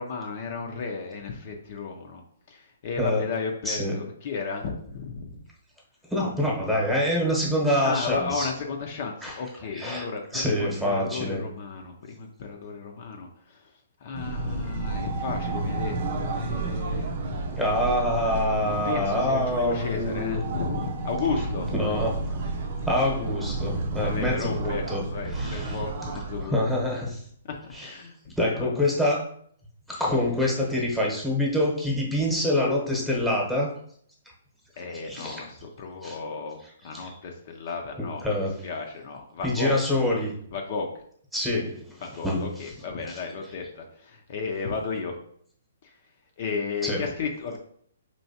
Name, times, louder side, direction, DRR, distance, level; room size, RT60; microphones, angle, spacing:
voice 1, 0.0-2.2 2.5-5.4 7.8-13.7 14.0-17.1 18.5-22.1 24.0-26.8 27.4-28.2 28.6-28.7 29.9-30.0 34.8-39.7 40.5-40.9 42.0-45.1 45.8-45.9 46.4-47.6, left 4 dB, 50° left, 2 dB, 0.6 m, -34 dB
voice 2, 3.0-3.3 3.6-4.0 6.1-8.5 9.2-9.3 9.7-10.1 10.3-11.4 17.6-20.4 21.7-22.4 22.8-25.0 25.3-25.8 26.4-27.2 27.7-27.9 28.4-29.3 29.9-33.7 35.0-35.4 36.0-36.1 36.9-37.1 38.0-38.6 39.4-40.4 41.3-42.7 43.1-43.2 46.8-47.0, left 1 dB, 5° right, -3 dB, 1.1 m, -26 dB
sound 1, 14.1-26.4, right 2 dB, 55° right, 0.6 m, -31 dB
4.4 x 3.0 x 2.8 m, 0.63 s
hypercardioid pair, 140°, 0 cm